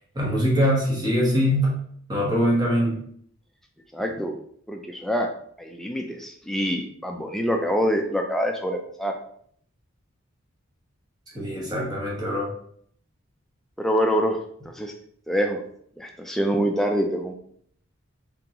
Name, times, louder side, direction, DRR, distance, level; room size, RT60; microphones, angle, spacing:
voice 1, 0.1-1.8 2.1-3.0 11.3-12.5, equal, 20° right, -4 dB, 1.1 m, -23 dB
voice 2, 3.9-4.4 4.7-5.3 5.6-9.1 13.8-14.9 15.3-15.6 16.0-17.3, equal, ahead, 3 dB, 0.3 m, -25 dB
3.8 x 3.6 x 2.9 m, 0.63 s
head